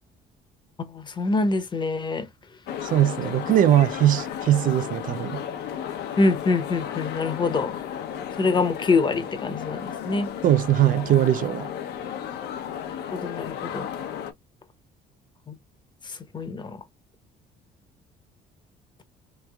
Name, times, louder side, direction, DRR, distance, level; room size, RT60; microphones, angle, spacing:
voice 1, 0.8-2.3 6.2-7.8 8.4-10.3 13.1-13.9 15.5-15.6 16.1-16.8, left 3 dB, 25° left, 0.8 m, -25 dB
sound 1, 2.7-14.3, left 9 dB, 75° left, 0.7 m, -34 dB
voice 2, 2.8-5.4 10.4-11.7, right 12 dB, 55° right, 0.4 m, -20 dB
3.3 x 3.1 x 2.2 m
cardioid pair, 110°, 17 cm